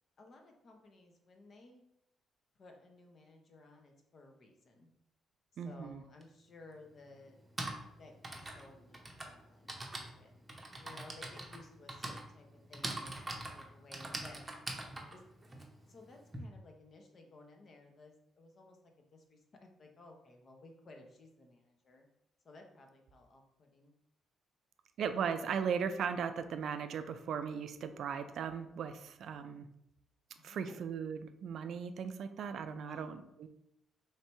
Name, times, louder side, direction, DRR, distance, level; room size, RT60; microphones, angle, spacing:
voice 1, 0.2-1.8 2.6-4.9 5.5-7.4 8.0-10.3 10.7-14.4 15.1-15.2 15.9-18.8 19.1-22.1 22.4-23.9 30.4-30.8 32.9-33.0, left 2 dB, 45° left, 2 dB, 0.8 m, -57 dB
voice 2, 5.6-6.0 25.0-29.7 30.4-33.5, right 7 dB, 65° right, 9 dB, 0.3 m, -37 dB
Typing, 6.2-6.3 7.3-16.4, right 2 dB, 20° right, 0.8 m, -43 dB
3.2 x 2.7 x 4.4 m, 0.81 s
cardioid pair, 90°, 0 cm